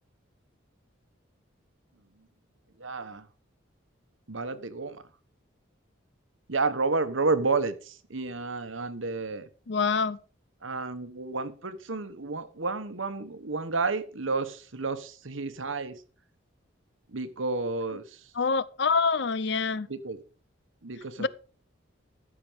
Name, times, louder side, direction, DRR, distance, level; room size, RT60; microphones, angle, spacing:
voice 1, 2.8-3.3 4.3-5.0 6.5-9.5 10.6-16.0 17.1-18.2 19.9-20.2 20.8-21.3, right 3 dB, 80° right, 1.2 m, -31 dB
voice 2, 9.7-10.2 18.3-19.9 21.2-21.3, left 5 dB, 60° left, 0.6 m, -26 dB
14.0 x 6.9 x 5.1 m
head